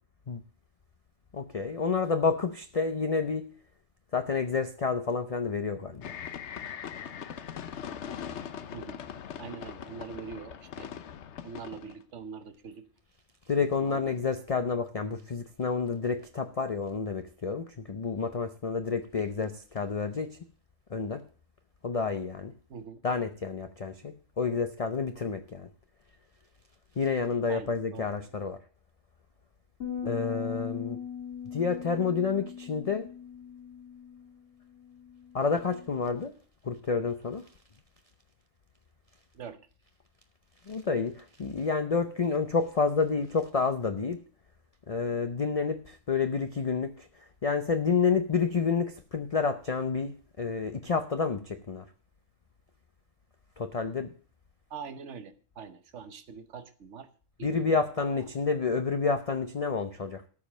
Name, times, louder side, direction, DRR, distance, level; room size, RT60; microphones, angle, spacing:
voice 1, 1.3-3.5 4.1-6.1 13.5-20.4 20.9-21.2 21.8-22.5 23.0-25.7 27.0-28.6 30.0-31.0 31.5-33.1 35.3-36.3 36.6-37.5 40.7-44.2 44.9-51.8 53.6-54.1 57.4-60.2, left 5 dB, 35° left, 8 dB, 0.6 m, -29 dB
sound 1, 6.0-12.0, left 8 dB, 70° left, 1.0 m, -41 dB
voice 2, 9.4-10.9 11.4-12.8 13.8-14.1 22.7-23.0 27.5-28.1 30.0-30.2 39.3-39.6 54.7-57.1 57.4-58.0, right 6 dB, 75° right, 11 dB, 1.3 m, -43 dB
sound 2, 29.8-36.1, left 8 dB, 55° left, 2.1 m, -40 dB
13.5 x 5.3 x 7.3 m, 0.40 s
omnidirectional pair, 1.2 m